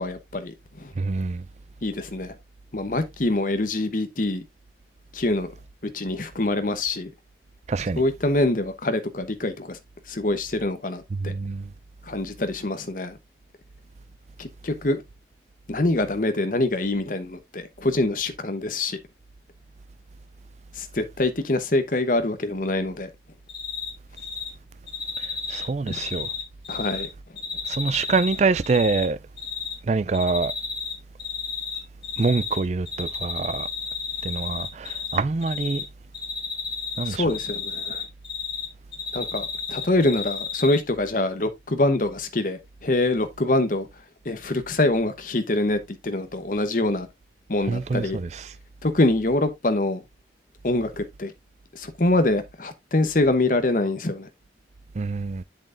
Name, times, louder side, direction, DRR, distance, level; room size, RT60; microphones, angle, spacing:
voice 1, 0.0-0.9 1.8-2.4 2.7-4.4 5.1-5.5 5.8-7.1 8.0-9.8 10.1-11.3 12.0-13.2 14.4-15.0 15.7-19.0 20.7-23.1 25.9-26.0 26.7-27.1 37.1-38.0 39.1-43.9 44.2-47.1 47.5-48.2 48.8-50.0 50.6-51.3 51.7-54.3, left 2 dB, 50° left, 1.0 m, -25 dB
voice 2, 1.0-1.4 7.7-8.0 11.1-11.7 25.2-26.3 27.7-29.2 29.9-30.5 32.2-33.7 34.2-35.9 37.0-37.3 47.7-48.4 54.9-55.4, right 4 dB, 40° right, 0.4 m, -25 dB
Cricket, 23.5-23.9 24.2-24.5 24.9-27.1 27.4-29.0 29.4-29.7 30.1-30.9 31.2-32.6 32.9-35.2 35.4-35.8 36.1-38.7 38.9-40.8, left 5 dB, 25° left, 2.4 m, -31 dB
7.8 x 7.4 x 2.5 m
head